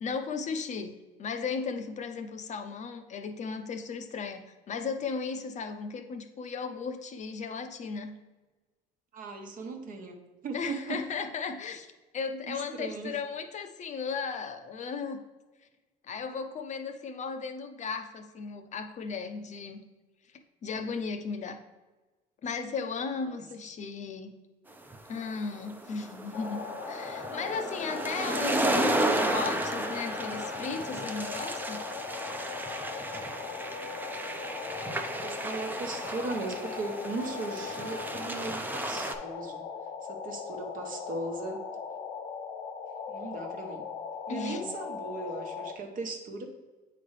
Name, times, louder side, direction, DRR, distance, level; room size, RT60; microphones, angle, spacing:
voice 1, 0.0-8.1 10.5-11.9 12.1-15.2 16.0-19.8 20.6-21.6 22.4-24.3 25.1-31.8 44.3-44.7, left 5 dB, 45° left, 7 dB, 0.6 m, -36 dB
voice 2, 9.1-10.2 10.4-11.0 12.5-13.2 23.3-23.4 35.2-39.7 40.0-41.7 43.1-43.8 44.3-46.5, right 3 dB, 55° right, 4 dB, 1.0 m, -38 dB
sound 1, 24.9-39.1, right 1 dB, 10° right, 0.5 m, -33 dB
sound 2, 26.3-45.7, left 6 dB, 85° left, 0.7 m, -39 dB
8.3 x 3.9 x 3.2 m, 1.2 s
cardioid pair, 110°, 17 cm